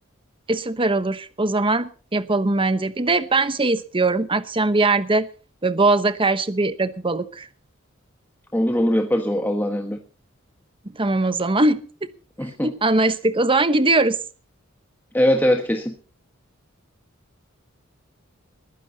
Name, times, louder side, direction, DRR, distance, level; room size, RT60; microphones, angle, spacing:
voice 1, 0.5-5.3 5.6-7.5 10.9-12.1 12.6-14.2, right 2 dB, 25° right, 12 dB, 1.0 m, -21 dB
voice 2, 8.5-10.0 12.4-12.7 15.1-15.9, equal, 10° left, 3 dB, 1.5 m, -21 dB
21.0 x 15.5 x 2.9 m, 0.39 s
head